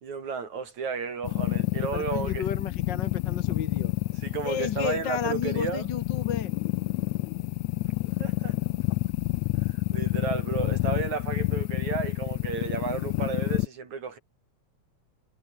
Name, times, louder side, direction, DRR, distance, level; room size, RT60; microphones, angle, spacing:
voice 1, 0.0-2.5 4.2-5.9 8.2-8.6 9.6-14.2, right 5 dB, 75° right, 5.5 m, -33 dB
sound 1, 1.2-13.7, left 20 dB, 80° left, 1.8 m, -29 dB
voice 2, 1.8-3.9 4.4-6.5, left 7 dB, 45° left, 1.9 m, -32 dB
omnidirectional pair, 3.3 m